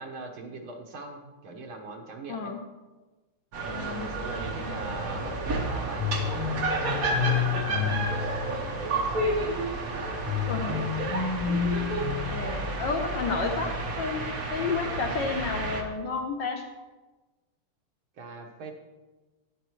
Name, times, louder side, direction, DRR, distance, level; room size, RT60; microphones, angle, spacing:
voice 1, 0.0-2.5 3.7-9.6 18.2-18.7, right 3 dB, 70° right, 1 dB, 2.0 m, -41 dB
voice 2, 2.3-2.6 3.7-4.1 4.7-4.9 7.7-8.0 10.5-10.8 11.5-11.6 12.3-13.7 14.0-16.6, left 4 dB, 65° left, 4 dB, 1.3 m, -31 dB
sound 1, 3.5-15.8, right 2 dB, 45° right, 1.4 m, -31 dB
sound 2, 6.0-9.1 10.3-13.2, left 8 dB, 90° left, 1.5 m, -31 dB
13.0 x 9.5 x 3.1 m, 1.2 s
omnidirectional pair, 2.3 m